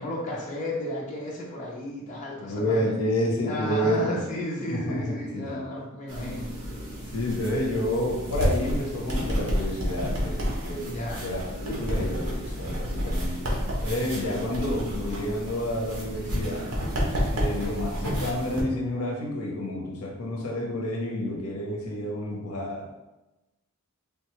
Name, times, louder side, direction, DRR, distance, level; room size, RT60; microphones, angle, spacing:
voice 1, 0.0-2.9 3.4-6.5 10.8-11.2, left 1 dB, 35° left, -4 dB, 0.6 m, -33 dB
voice 2, 2.4-4.2 4.7-5.7 6.2-6.4 7.1-13.5 13.8-16.7 17.3-22.9, left 1 dB, 75° left, -1 dB, 0.6 m, -29 dB
sound 1, 6.1-18.6, equal, 75° right, 0.8 m, -30 dB
3.4 x 2.2 x 2.9 m, 1.0 s
head